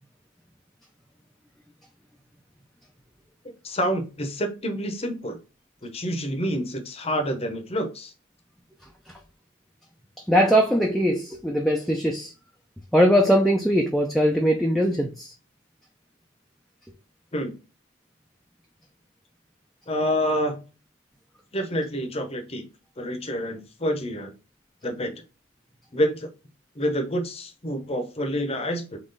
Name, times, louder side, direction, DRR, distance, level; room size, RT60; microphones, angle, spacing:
voice 1, 3.6-5.4 5.8-8.1 17.3-17.5 19.9-20.6 21.5-22.6 23.0-24.3 24.8-25.1 25.9-26.3 26.8-29.0, equal, 30° left, 0.8 m, -27 dB
voice 2, 10.3-12.3 12.9-15.3, equal, ahead, 0.4 m, -21 dB
3.8 x 3.0 x 3.9 m
head